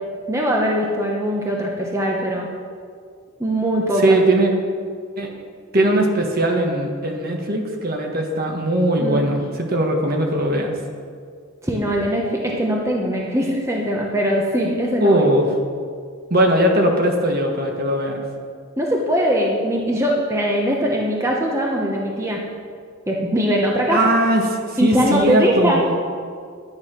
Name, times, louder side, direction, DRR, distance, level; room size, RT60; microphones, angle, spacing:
voice 1, 0.3-2.5 3.4-4.2 9.0-9.3 11.6-15.2 18.8-22.4 23.1-24.0 24.8-25.8, equal, 15° right, -2 dB, 1.1 m, -21 dB
voice 2, 4.0-4.5 5.2-5.3 5.7-10.7 15.0-15.5 16.3-18.2 23.9-24.4 24.8-25.9, right 1 dB, 40° right, 2 dB, 1.4 m, -19 dB
11.5 x 9.7 x 6.0 m, 2.1 s
head